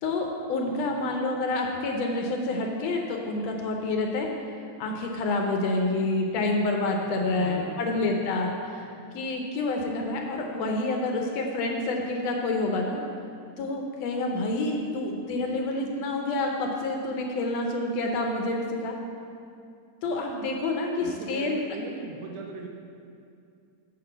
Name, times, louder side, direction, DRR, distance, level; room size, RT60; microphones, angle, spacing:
voice 1, 0.0-4.3 4.8-8.9 9.1-13.0 13.6-18.9 20.0-21.6, left 2 dB, 75° left, 1 dB, 1.6 m, -28 dB
voice 2, 7.0-8.2 20.9-22.7, right 5 dB, 85° right, 2 dB, 2.3 m, -40 dB
6.6 x 5.7 x 6.7 m, 2.4 s
omnidirectional pair, 3.5 m